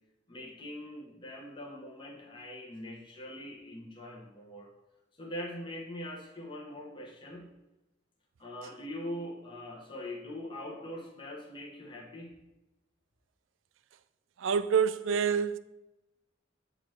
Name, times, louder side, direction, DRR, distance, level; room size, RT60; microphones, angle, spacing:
voice 1, 0.3-4.7 5.1-7.5 8.4-12.3, left 1 dB, 25° left, 1.0 m, -42 dB
voice 2, 14.4-15.6, right 7 dB, 90° right, 0.4 m, -27 dB
7.8 x 3.2 x 6.2 m
head